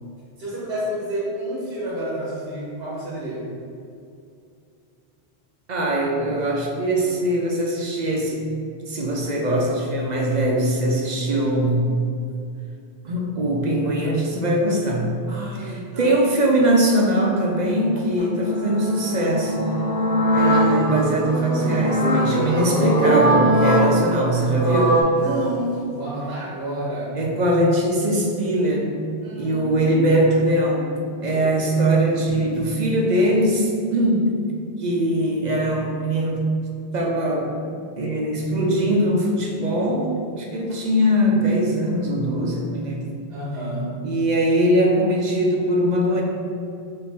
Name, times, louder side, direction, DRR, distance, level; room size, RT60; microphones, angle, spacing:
voice 1, 0.4-3.5 15.3-16.2 25.1-27.2 29.2-29.7 31.3-31.6 43.3-43.9, right 1 dB, 85° right, -6 dB, 1.2 m, -29 dB
voice 2, 5.7-8.4 8.9-11.8 13.0-15.1 15.6-19.6 20.3-25.0 27.1-29.0 29.4-30.9 31.2-34.5 34.8-36.6 36.9-37.5 38.0-40.1 40.3-43.1 44.0-46.2, right 1 dB, 50° right, -1 dB, 0.6 m, -21 dB
sound 1, 18.2-25.0, right 1 dB, 20° left, 1.2 m, -21 dB
4.5 x 2.8 x 4.0 m, 2.5 s
omnidirectional pair, 1.0 m